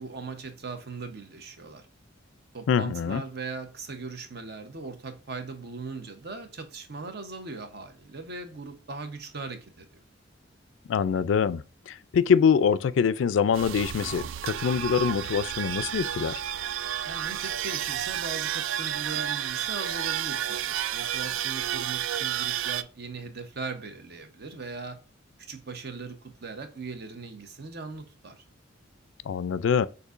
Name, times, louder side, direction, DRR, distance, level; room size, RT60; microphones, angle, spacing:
voice 1, 0.0-1.9 2.5-9.9 17.0-25.0 25.4-28.4, right 4 dB, 55° right, 0.8 m, -39 dB
voice 2, 2.7-3.2 10.9-16.4 29.3-29.9, left 7 dB, 75° left, 0.3 m, -24 dB
sound 1, 13.5-22.8, right 11 dB, 85° right, 0.3 m, -31 dB
6.6 x 2.7 x 2.5 m
head